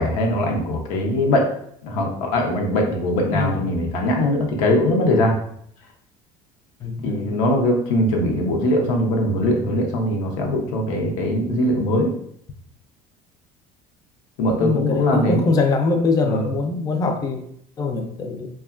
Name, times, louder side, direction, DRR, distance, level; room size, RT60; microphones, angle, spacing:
voice 1, 0.0-1.5 1.8-5.3 7.0-12.1 14.4-15.4 16.2-16.5, left 1 dB, 90° left, 1 dB, 0.7 m, -21 dB
voice 2, 3.3-3.7 6.8-7.3 14.6-17.4 17.8-18.5, left 3 dB, 20° left, 4 dB, 0.4 m, -23 dB
2.8 x 2.3 x 2.4 m, 0.68 s
supercardioid pair, 105°, 17 cm